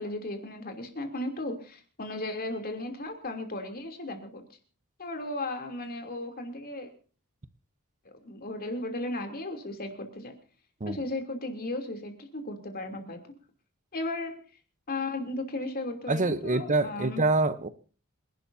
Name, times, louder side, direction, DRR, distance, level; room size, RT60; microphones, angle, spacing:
voice 1, 0.0-4.4 5.0-6.9 8.0-10.3 10.8-13.2 13.9-14.4 14.9-17.2, left 2 dB, 45° left, 5 dB, 3.0 m, -35 dB
voice 2, 16.1-17.7, right 2 dB, 35° right, 12 dB, 0.8 m, -26 dB
27.5 x 12.0 x 2.7 m, 0.39 s
head